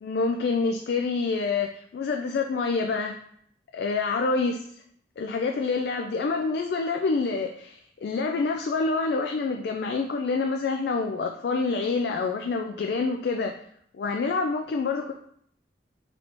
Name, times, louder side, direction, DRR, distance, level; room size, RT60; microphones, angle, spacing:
voice 1, 0.0-3.2 3.7-4.6 5.2-13.5 13.9-15.1, left 4 dB, 70° left, 3 dB, 0.3 m, -27 dB
4.0 x 3.3 x 3.0 m, 0.66 s
head